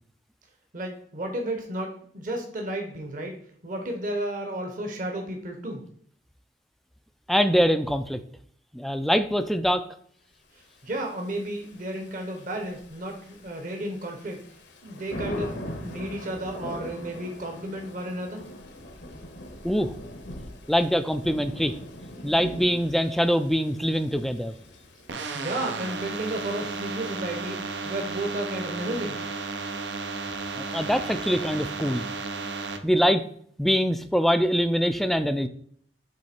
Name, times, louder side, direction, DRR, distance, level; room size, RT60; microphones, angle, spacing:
voice 1, 0.7-3.4 3.6-5.8 10.5-14.4 14.8-15.5 15.8-18.4 25.3-27.6 27.8-29.2, right 1 dB, 50° right, 3 dB, 0.9 m, -33 dB
voice 2, 7.3-8.2 8.7-9.9 19.6-20.0 20.7-21.7 22.2-24.5 30.6-32.0 32.8-33.2 33.6-35.5, equal, ahead, 10 dB, 0.3 m, -23 dB
Thunder / Rain, 10.8-27.4, equal, 75° left, 1.1 m, -42 dB
sound 1, 25.1-32.8, right 4 dB, 85° right, 0.7 m, -33 dB
7.5 x 3.3 x 4.3 m, 0.62 s
head